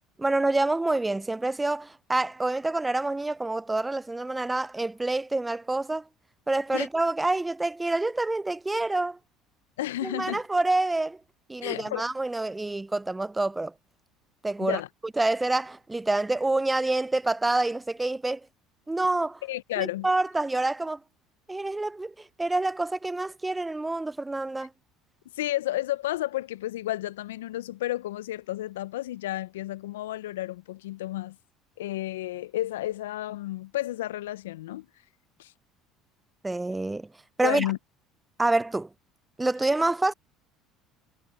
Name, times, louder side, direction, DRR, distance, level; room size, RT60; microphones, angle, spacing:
voice 1, 0.2-6.0 6.5-9.2 10.0-11.2 11.5-13.7 14.4-14.8 15.2-18.4 18.9-19.4 19.8-21.0 21.5-24.7 36.4-37.1 37.4-37.7 38.4-38.9 39.4-40.1, right 2 dB, 15° right, 0.4 m, -27 dB
voice 2, 9.8-10.4 11.6-12.0 14.6-14.9 19.4-20.1 25.3-31.4 31.8-34.9 35.4-35.5 37.4-37.8, left 15 dB, 85° left, 0.5 m, -32 dB
hypercardioid pair, 70°, 0 cm